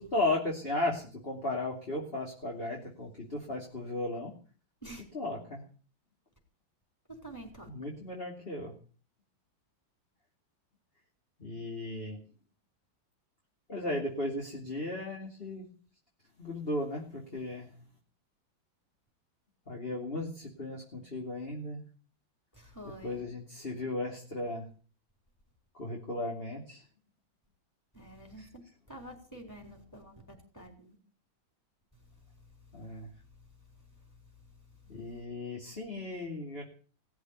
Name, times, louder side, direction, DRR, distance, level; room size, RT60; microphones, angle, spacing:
voice 1, 0.0-4.3 5.1-5.6 7.7-8.7 11.4-12.2 13.7-15.6 16.4-17.7 19.7-21.8 22.8-24.7 25.8-26.8 28.4-28.5 32.7-33.1 34.9-36.6, left 2 dB, 30° left, 3.0 m, -35 dB
voice 2, 7.1-7.7 22.5-23.2 27.9-28.6 28.9-30.2 30.5-31.0, right 1 dB, 10° left, 5.1 m, -47 dB
18.0 x 8.0 x 9.5 m
omnidirectional pair, 2.1 m